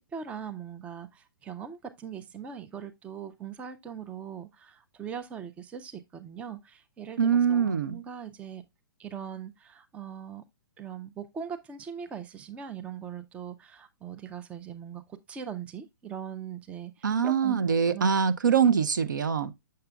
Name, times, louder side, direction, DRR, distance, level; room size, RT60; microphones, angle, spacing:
voice 1, 0.0-8.6 9.0-10.4 10.8-18.1 18.7-18.8, right 8 dB, 10° right, 0.4 m, -41 dB
voice 2, 7.2-8.0 17.0-19.5, right 7 dB, 60° right, 0.6 m, -24 dB
6.6 x 6.5 x 2.2 m
figure-of-eight pair, 115°, 11 cm